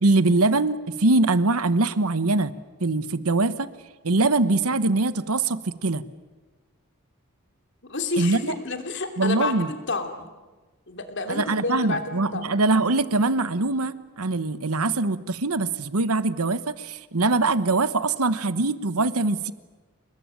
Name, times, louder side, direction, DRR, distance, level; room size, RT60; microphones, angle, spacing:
voice 1, 0.0-2.5 2.8-3.7 4.0-6.0 8.2-8.5 9.2-9.7 11.3-19.5, right 3 dB, 90° right, 14 dB, 1.2 m, -23 dB
voice 2, 7.9-10.3 10.9-12.5, left 3 dB, 55° left, 6 dB, 3.1 m, -29 dB
29.5 x 20.5 x 9.0 m, 1.3 s
head